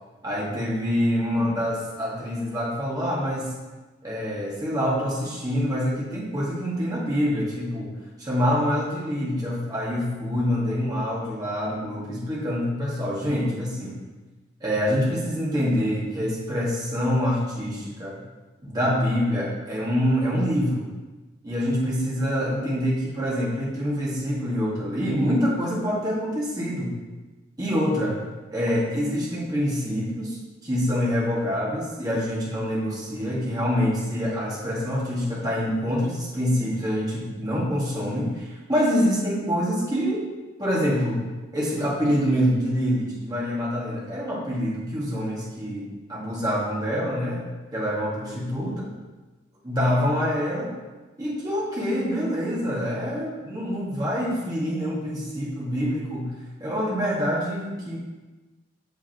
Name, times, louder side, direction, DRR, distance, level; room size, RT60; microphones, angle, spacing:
voice 1, 0.2-3.5 4.0-7.9 8.2-14.0 14.6-18.2 18.6-20.9 21.4-26.9 27.6-28.2 28.5-30.4 30.6-40.2 40.6-41.2 41.5-47.4 47.7-48.8 49.6-50.7 51.2-56.3 56.6-58.0, equal, 20° right, -6 dB, 1.9 m, -26 dB
8.1 x 6.9 x 3.0 m, 1.2 s
head